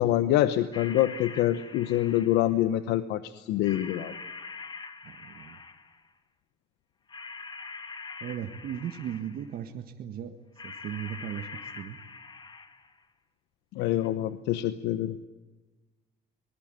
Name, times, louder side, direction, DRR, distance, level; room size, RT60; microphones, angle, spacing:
voice 1, 0.0-4.1 13.8-15.2, left 13 dB, 90° left, 12 dB, 1.0 m, -26 dB
sound 1, 0.7-2.6 3.6-6.1 7.1-9.5 10.6-13.0 14.0-14.1, left 4 dB, 25° left, 2.1 m, -44 dB
voice 2, 5.0-5.6 8.2-10.4 10.6-12.0, right 9 dB, 60° right, 5 dB, 1.7 m, -37 dB
24.0 x 20.0 x 9.2 m, 1.2 s
cardioid pair, 110°, 17 cm